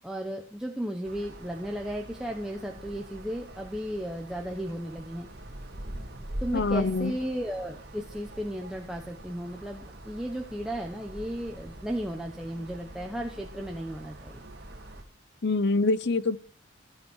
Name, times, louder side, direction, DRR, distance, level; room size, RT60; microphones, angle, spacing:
voice 1, 0.0-5.3 6.4-14.4, equal, 5° right, 1.2 m, -35 dB
sound 1, 1.0-15.0, right 1 dB, 50° right, 2.1 m, -44 dB
voice 2, 6.5-7.1 15.4-16.4, left 3 dB, 55° left, 0.7 m, -25 dB
15.5 x 13.0 x 4.7 m
head